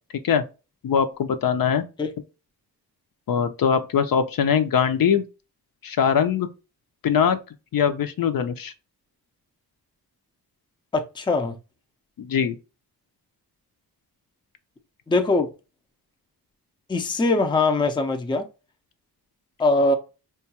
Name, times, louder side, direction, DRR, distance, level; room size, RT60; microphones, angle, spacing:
voice 1, 0.8-1.8 3.3-5.2 5.8-6.5 7.0-7.4 7.7-8.7 12.2-12.5, left 7 dB, 60° left, 0.5 m, -21 dB
voice 2, 10.9-11.6 15.1-15.5 16.9-18.5 19.6-19.9, left 2 dB, 10° left, 0.5 m, -22 dB
4.6 x 2.3 x 2.8 m
wide cardioid pair, 120°, 39 cm